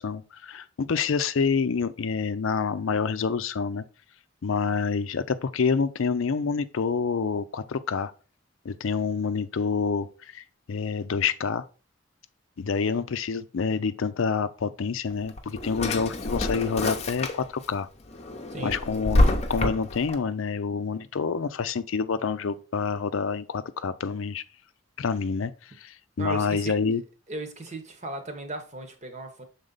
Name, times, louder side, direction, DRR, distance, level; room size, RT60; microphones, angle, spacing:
voice 1, 0.0-3.8 4.4-8.1 8.6-11.6 12.6-17.9 18.6-24.4 25.0-27.0, left 5 dB, 85° left, 0.5 m, -27 dB
Drawer open or close, 15.1-17.7 18.1-20.1, left 1 dB, 35° left, 0.7 m, -26 dB
voice 2, 26.2-26.8 27.3-29.4, right 2 dB, 35° right, 1.0 m, -36 dB
6.5 x 4.0 x 3.9 m
head